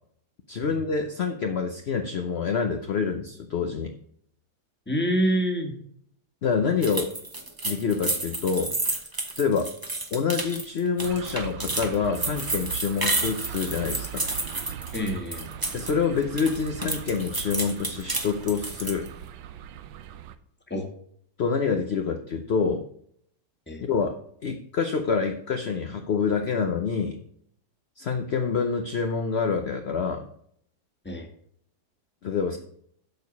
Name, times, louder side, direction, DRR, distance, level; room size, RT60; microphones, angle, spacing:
voice 1, 0.5-3.9 6.4-7.1 7.6-8.7 9.4-9.7 10.1-14.2 15.7-19.1 21.4-22.9 23.8-24.2 24.4-27.2 28.0-30.3 32.2-32.6, left 5 dB, 55° left, 5 dB, 0.7 m, -27 dB
voice 2, 4.9-5.7 14.9-15.5 20.7-20.9 23.7-23.8 31.0-31.3, equal, 5° left, 1 dB, 1.5 m, -26 dB
sound 1, 6.8-15.9 16.2-19.1, right 2 dB, 15° right, 0.9 m, -31 dB
sound 2, 11.0-20.4, right 10 dB, 75° right, 1.3 m, -40 dB
13.0 x 4.7 x 5.3 m, 0.66 s
omnidirectional pair, 2.0 m